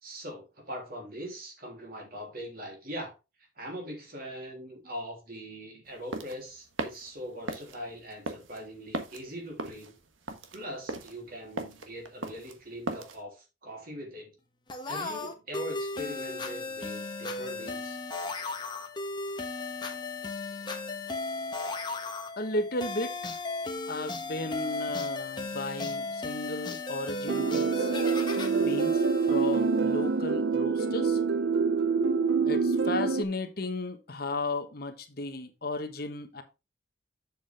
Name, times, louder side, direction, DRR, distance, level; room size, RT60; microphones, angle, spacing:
voice 1, 0.0-3.2 3.6-9.9 10.5-14.3 14.8-18.0, equal, 50° right, 3.2 m, -41 dB
sound 1, 5.9-13.2, right 2 dB, 90° right, 1.4 m, -38 dB
sound 2, 14.7-30.2, left 3 dB, 25° left, 1.2 m, -36 dB
voice 2, 22.4-23.4 23.9-27.9 28.6-31.2 32.4-36.4, left 2 dB, 50° left, 1.2 m, -34 dB
sound 3, 27.3-33.2, right 5 dB, 65° right, 0.6 m, -26 dB
7.7 x 7.3 x 3.5 m
head